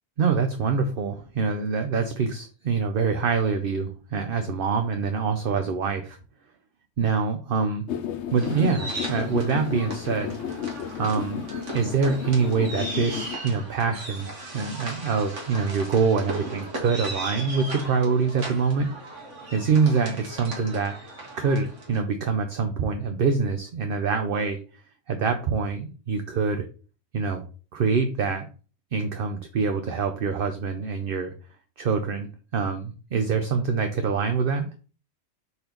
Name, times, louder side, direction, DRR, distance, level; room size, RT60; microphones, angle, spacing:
voice 1, 0.2-6.2 7.0-7.8 8.3-10.4 11.0-11.4 11.7-18.9 19.5-21.0 21.4-24.6 25.1-26.7 27.1-27.4 27.7-28.5 28.9-31.3 31.8-34.7, right 5 dB, 55° right, 6 dB, 0.8 m, -25 dB
sound 1, 7.9-13.4, left 8 dB, 75° left, 1.0 m, -33 dB
sound 2, 8.4-22.0, right 1 dB, 85° right, 2.1 m, -37 dB
4.5 x 4.1 x 5.1 m, 0.37 s
omnidirectional pair, 1.2 m